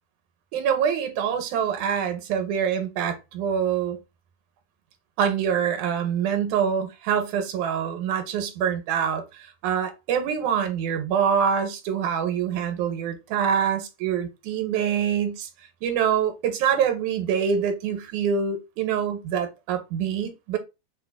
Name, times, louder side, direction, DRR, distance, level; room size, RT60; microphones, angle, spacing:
voice 1, 0.5-4.0 5.2-15.5 15.8-20.6, right 8 dB, 85° right, 2.0 m, -25 dB
6.0 x 2.2 x 2.3 m
omnidirectional pair, 3.4 m